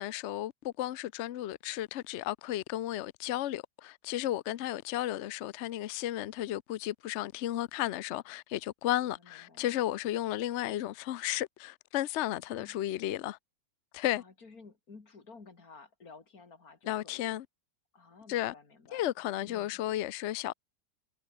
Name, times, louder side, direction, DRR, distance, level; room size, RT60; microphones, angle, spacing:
voice 1, 0.0-13.4 13.9-14.2 16.9-17.4 18.3-18.5 18.9-20.5, left 13 dB, 75° left, 0.6 m, -33 dB
voice 2, 9.1-9.7 12.5-12.8 14.1-17.3 17.9-19.1 19.4-19.8, left 4 dB, 55° left, 3.4 m, -54 dB
omnidirectional pair, 1.9 m